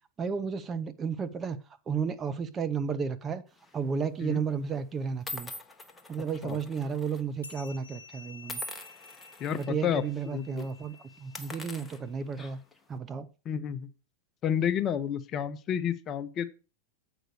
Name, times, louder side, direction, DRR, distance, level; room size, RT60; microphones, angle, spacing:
voice 1, 0.2-1.6 1.9-3.4 3.7-5.5 6.1-8.6 9.5-12.6 12.9-13.3, right 6 dB, 20° right, 0.7 m, -33 dB
sound 1, 3.6-3.9 4.6-4.7 5.3-7.2 7.5-7.7 8.5-9.7 10.1-10.2 10.5-10.7 11.2-12.8, left 1 dB, 10° left, 1.0 m, -43 dB
sound 2, 7.4-12.3, left 5 dB, 75° left, 1.3 m, -52 dB
voice 2, 9.4-10.0 10.3-10.7 13.5-13.9 14.4-16.5, left 9 dB, 30° left, 0.7 m, -30 dB
7.9 x 5.0 x 6.2 m
figure-of-eight pair, 90°, 0 cm